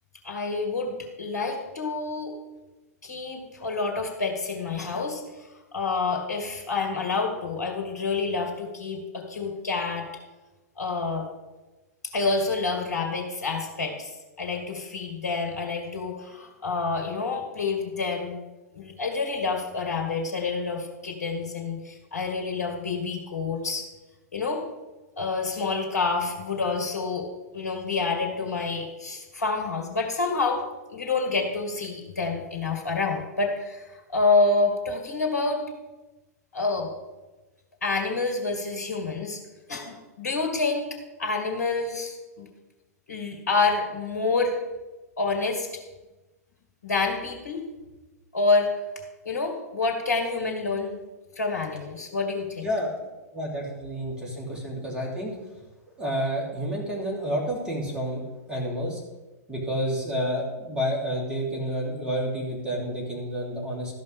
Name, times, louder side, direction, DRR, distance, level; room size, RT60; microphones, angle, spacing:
voice 1, 0.2-2.3 3.0-10.1 10.8-11.3 12.1-18.4 18.7-23.9 24.3-24.7 25.2-27.3 27.5-30.6 30.9-35.6 36.5-36.9 37.8-39.4 39.7-40.9 41.2-42.5 43.1-44.6 45.2-45.8 46.8-47.7 48.3-48.7 49.2-51.0 51.4-52.7, left 3 dB, 70° left, 2 dB, 2.2 m, -28 dB
voice 2, 52.6-52.9 53.3-55.3 56.0-58.2 58.5-59.0 59.5-64.0, equal, 10° right, -3 dB, 3.1 m, -29 dB
13.0 x 5.5 x 6.6 m, 1.1 s
figure-of-eight pair, 105°, 9 cm